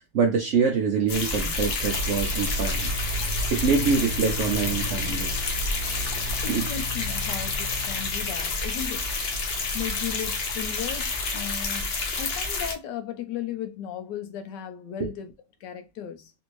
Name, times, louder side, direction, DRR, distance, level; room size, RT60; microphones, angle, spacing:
voice 1, 0.0-2.9 3.5-5.5 6.5-6.7 15.0-15.1, right 5 dB, 70° right, 0.7 m, -25 dB
sound 1, 1.1-12.7, left 3 dB, 60° left, 0.6 m, -29 dB
sound 2, 1.8-11.5, right 1 dB, 40° left, 1.4 m, -37 dB
voice 2, 6.4-9.0 9.7-15.3 15.6-16.3, left 9 dB, 85° left, 1.2 m, -36 dB
3.4 x 2.5 x 3.0 m
omnidirectional pair, 1.8 m